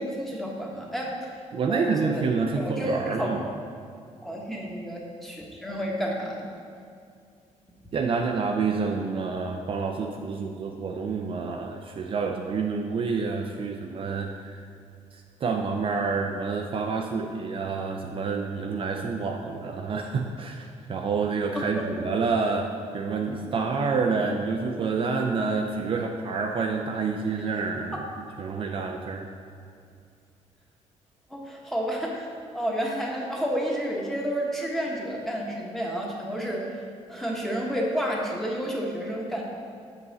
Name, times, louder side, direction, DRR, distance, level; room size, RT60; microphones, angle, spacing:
voice 1, 0.0-1.4 1.7-2.2 2.6-3.3 4.2-6.5 21.5-21.9 27.9-28.0 31.3-36.8 37.1-39.4, equal, ahead, -2 dB, 1.2 m, -30 dB
voice 2, 1.5-3.4 7.9-14.6 15.1-28.0 28.4-29.3, right 4 dB, 45° right, 2 dB, 0.5 m, -28 dB
6.9 x 5.5 x 4.1 m, 2.5 s
cardioid pair, 110°, 13 cm